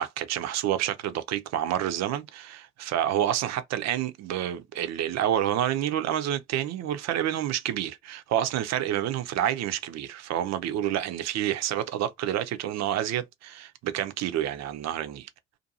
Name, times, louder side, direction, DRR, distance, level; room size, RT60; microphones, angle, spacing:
voice 1, 0.0-15.3, right 11 dB, 55° right, 0.6 m, -28 dB
2.5 x 2.5 x 2.7 m
hypercardioid pair, 50°, 32 cm